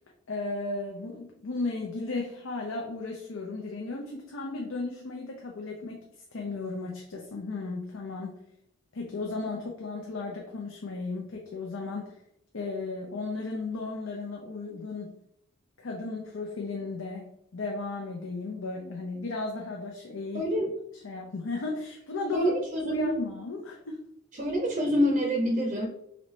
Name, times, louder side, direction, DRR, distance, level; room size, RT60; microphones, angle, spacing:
voice 1, 0.3-6.0 6.3-8.4 8.9-12.2 12.5-15.2 15.8-20.5 21.0-22.6 22.8-24.0, left 3 dB, 85° left, 0 dB, 0.6 m, -35 dB
voice 2, 20.3-20.7 22.3-23.2 24.4-25.9, equal, 40° right, 0 dB, 0.6 m, -27 dB
3.9 x 3.2 x 3.1 m, 0.74 s
head